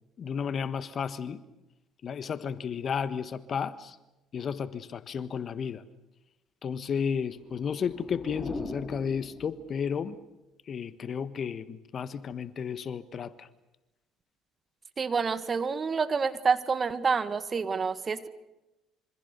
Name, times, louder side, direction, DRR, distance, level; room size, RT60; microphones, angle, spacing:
voice 1, 0.2-1.4 2.0-4.0 4.3-5.8 6.6-10.2 10.7-13.5, left 7 dB, 45° left, 1.4 m, -33 dB
sound 1, 7.3-10.0, left 2 dB, 20° left, 4.1 m, -41 dB
voice 2, 15.0-18.3, right 5 dB, 35° right, 1.9 m, -28 dB
26.5 x 25.5 x 6.8 m
hypercardioid pair, 60°, 0 cm